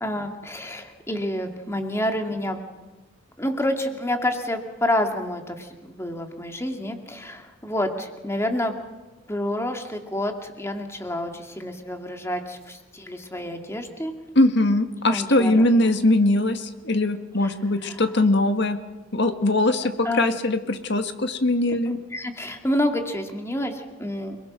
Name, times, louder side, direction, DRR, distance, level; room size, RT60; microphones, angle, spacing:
voice 1, 0.0-2.6 3.4-8.8 9.3-14.1 15.1-16.0 17.4-17.6 17.8-18.0 20.0-20.4 21.9-24.4, left 1 dB, 15° left, 4 dB, 2.3 m, -28 dB
voice 2, 14.4-18.8 19.1-21.9, left 2 dB, 55° left, 8 dB, 1.8 m, -21 dB
30.0 x 21.5 x 6.4 m, 1.2 s
head